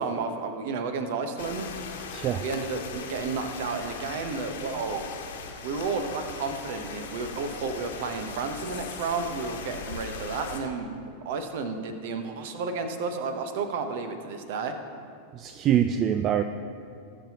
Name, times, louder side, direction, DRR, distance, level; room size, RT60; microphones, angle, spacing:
voice 1, 0.0-1.7 2.4-5.0 5.6-10.9 11.2-14.7, right 4 dB, 55° right, 7 dB, 1.0 m, -32 dB
sound 1, 1.4-10.6, left 5 dB, 60° left, 1.3 m, -39 dB
voice 2, 2.1-2.4 15.3-16.4, right 10 dB, 30° right, 10 dB, 0.4 m, -24 dB
19.5 x 7.4 x 3.0 m, 2.4 s
figure-of-eight pair, 90°, 0 cm